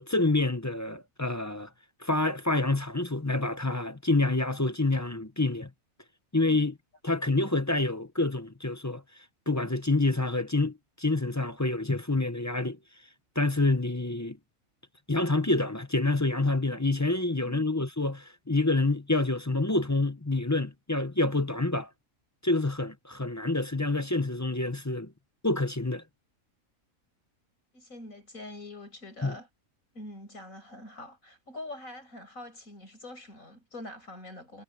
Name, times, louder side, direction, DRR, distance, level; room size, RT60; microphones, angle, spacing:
voice 1, 0.0-1.7 2.0-5.7 6.3-6.7 7.0-9.0 9.5-12.8 13.4-14.4 15.1-21.9 22.4-25.1 25.4-26.0 29.2-29.3, left 2 dB, 15° left, 0.7 m, -27 dB
voice 2, 17.3-17.6 27.7-29.5 29.9-34.6, left 1 dB, 75° left, 6.8 m, -44 dB
omnidirectional pair, 1.4 m